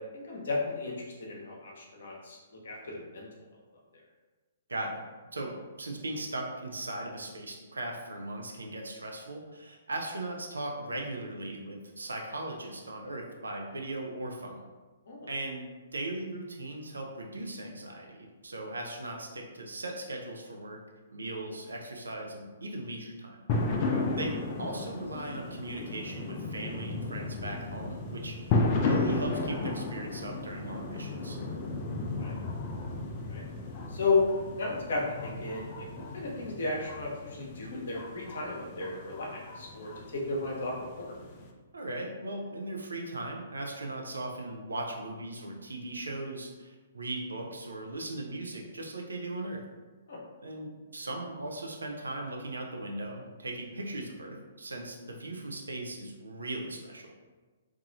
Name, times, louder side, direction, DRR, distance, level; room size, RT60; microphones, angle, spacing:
voice 1, 0.1-2.4 2.6-3.3 15.1-15.3 23.9-24.0 32.2-32.3 33.2-33.4 33.9-35.9 36.1-41.1 50.1-50.2, left 3 dB, 55° left, -2 dB, 0.7 m, -33 dB
voice 2, 4.7-5.0 5.3-14.6 15.3-20.8 21.1-23.4 24.2-31.4 41.7-49.6 50.4-57.1, right 1 dB, 70° right, 1 dB, 0.4 m, -38 dB
sound 1, 23.5-41.5, left 3 dB, 35° left, 0.4 m, -34 dB
2.8 x 2.3 x 2.6 m, 1.3 s
figure-of-eight pair, 120°, 0 cm